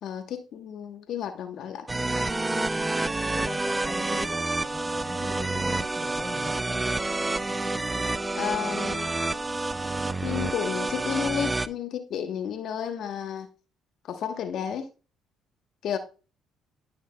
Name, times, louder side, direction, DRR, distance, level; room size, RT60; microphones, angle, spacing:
voice 1, 0.0-1.9 8.3-9.5 10.2-13.5 14.1-14.9 15.8-16.0, left 8 dB, 65° left, 1.1 m, -32 dB
sound 1, 1.9-11.7, right 2 dB, 20° right, 0.5 m, -28 dB
voice 2, 2.5-6.6, left 2 dB, 15° left, 2.1 m, -42 dB
12.5 x 5.7 x 2.2 m
supercardioid pair, 65°, 0 cm